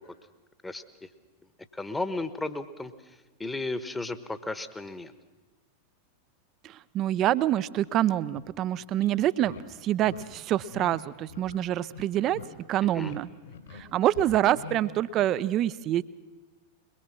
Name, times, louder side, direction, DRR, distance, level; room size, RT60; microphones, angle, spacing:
voice 1, 0.6-1.1 1.7-5.1 12.8-13.1, left 2 dB, 10° left, 12 dB, 1.2 m, -35 dB
voice 2, 6.6-12.4 12.7-13.3 13.7-16.0, right 12 dB, 35° right, 17 dB, 0.6 m, -26 dB
sound 1, 8.3-8.5 8.9-9.1 9.4-9.6 10.0-10.3 10.7-11.0 11.3-11.6 11.8-12.5 12.8-13.2 13.4-13.8 14.2-14.8, left 6 dB, 65° left, 3.8 m, -43 dB
22.5 x 21.5 x 6.0 m, 1.2 s
figure-of-eight pair, 90°, 0 cm